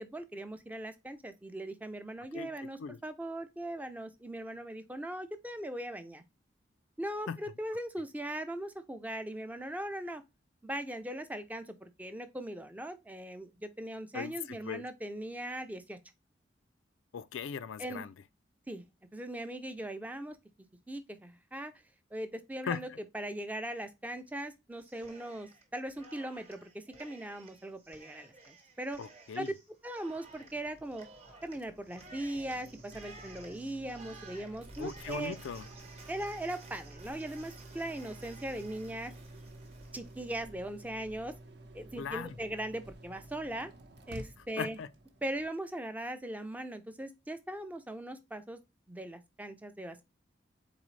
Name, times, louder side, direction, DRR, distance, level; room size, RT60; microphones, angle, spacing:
voice 1, 0.0-6.2 7.0-10.2 10.6-16.0 17.8-18.0 18.7-18.8 19.1-20.4 20.9-21.7 22.1-22.9 23.1-29.0 29.4-29.5 29.8-31.1 31.4-35.4 36.1-39.1 39.9-41.3 41.7-43.7 44.1-44.8 45.2-48.6 48.9-50.1, right 1 dB, 10° right, 0.4 m, -39 dB
voice 2, 2.3-3.0 7.3-7.4 14.1-14.9 17.1-18.1 22.7-23.0 29.0-29.5 34.8-35.7 42.0-42.3 44.6-44.9, left 6 dB, 85° left, 0.4 m, -39 dB
Cheering, 24.8-25.6 25.9-40.4, right 3 dB, 30° right, 0.9 m, -55 dB
sound 1, 30.3-45.5, right 1 dB, 60° right, 0.7 m, -52 dB
3.9 x 3.8 x 3.1 m
head